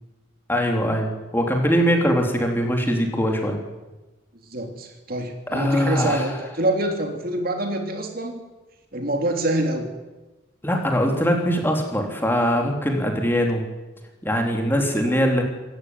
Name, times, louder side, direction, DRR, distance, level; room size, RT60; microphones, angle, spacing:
voice 1, 0.5-3.6 5.5-6.3 10.6-13.6 14.2-15.4, equal, 10° left, 2 dB, 3.7 m, -22 dB
voice 2, 4.5-8.4 8.9-9.9 14.8-15.4, right 1 dB, 50° right, 4 dB, 3.1 m, -26 dB
27.0 x 14.5 x 9.6 m, 1.1 s
head